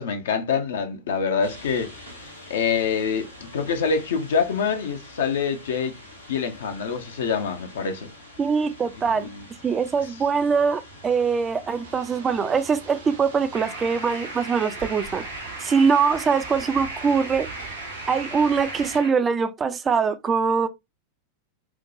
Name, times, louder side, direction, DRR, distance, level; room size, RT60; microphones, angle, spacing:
voice 1, 0.0-1.9 2.5-6.0 6.3-8.1 9.1-9.4, left 6 dB, 60° left, 0.6 m, -25 dB
sound 1, 1.4-19.0, equal, 80° left, 1.0 m, -46 dB
voice 2, 8.4-9.3 9.6-15.2 15.6-17.5 18.1-20.7, right 5 dB, 20° right, 0.3 m, -23 dB
sound 2, 11.8-19.0, right 6 dB, 60° right, 0.7 m, -43 dB
sound 3, 13.5-19.1, right 1 dB, 80° right, 1.4 m, -37 dB
4.6 x 2.2 x 2.4 m
figure-of-eight pair, 90°, 0 cm